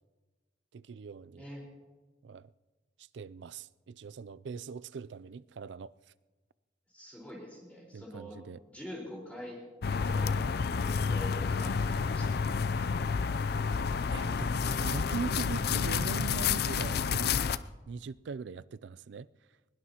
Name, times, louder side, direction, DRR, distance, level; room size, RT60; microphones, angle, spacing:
voice 1, 0.7-1.5 2.2-2.5 3.1-5.9 7.9-8.6 13.8-17.5 17.9-19.3, right 5 dB, 70° right, 0.4 m, -41 dB
voice 2, 6.9-8.4 8.7-9.6 9.9-10.5 10.8-12.5, left 1 dB, 10° left, 4.4 m, -45 dB
sound 1, 9.8-17.6, left 5 dB, 55° left, 0.4 m, -30 dB
22.5 x 20.5 x 2.9 m
head